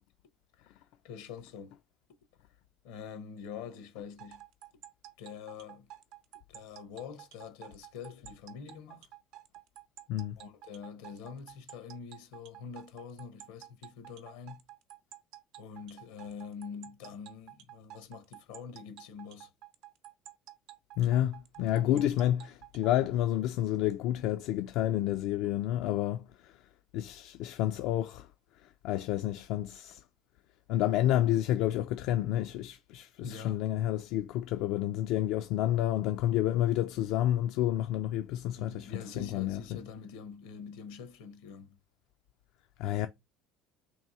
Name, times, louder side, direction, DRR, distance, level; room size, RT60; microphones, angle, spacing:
voice 1, 0.6-1.8 2.8-4.4 5.2-5.9 6.5-9.1 10.4-14.6 15.6-19.5 21.7-22.1 33.2-33.7 38.6-41.8, left 6 dB, 85° left, 1.0 m, -45 dB
sound 1, 4.2-22.9, right 14 dB, 75° right, 0.6 m, -51 dB
voice 2, 21.0-26.5 26.9-28.3 28.8-30.0 30.7-39.8 42.8-43.1, left 12 dB, 70° left, 0.3 m, -30 dB
3.4 x 2.7 x 4.2 m
cardioid pair, 125°, 0 cm